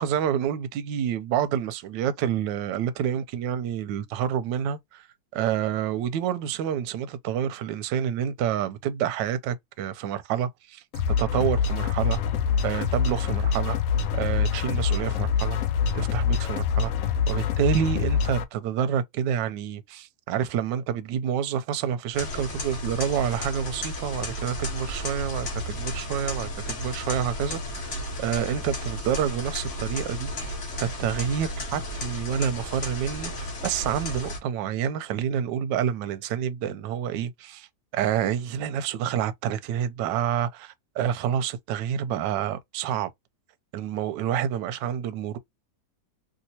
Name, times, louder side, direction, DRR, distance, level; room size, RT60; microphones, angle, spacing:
voice 1, 0.0-5.0 5.3-10.8 11.2-12.2 12.6-13.8 14.2-15.6 15.9-16.9 17.3-37.7 37.9-43.1 43.7-45.4, right 9 dB, 75° right, 1.2 m, -28 dB
sound 1, 10.9-18.4, left 6 dB, 85° left, 0.7 m, -25 dB
sound 2, 22.1-34.4, left 1 dB, 45° left, 1.3 m, -33 dB
3.1 x 2.8 x 2.7 m
omnidirectional pair, 2.1 m